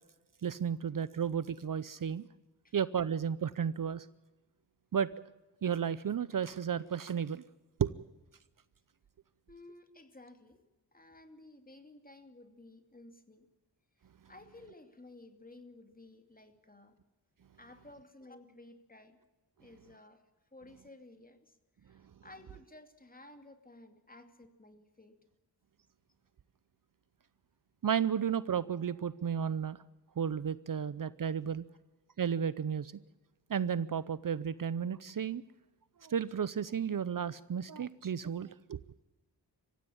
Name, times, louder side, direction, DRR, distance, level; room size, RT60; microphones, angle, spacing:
voice 1, 0.4-2.3 2.7-4.1 4.9-5.1 5.6-7.4 7.8-7.9 27.8-29.8 30.2-31.6 32.2-32.9 33.5-35.4 36.0-38.8, right 8 dB, 50° right, 17 dB, 0.7 m, -33 dB
voice 2, 9.5-10.6 10.9-13.5 14.3-16.9 17.6-19.2 19.6-20.2 20.5-21.4 21.9-25.2, left 2 dB, 20° left, 7 dB, 2.6 m, -55 dB
24.5 x 15.5 x 8.7 m, 1.1 s
wide cardioid pair, 95°, 42 cm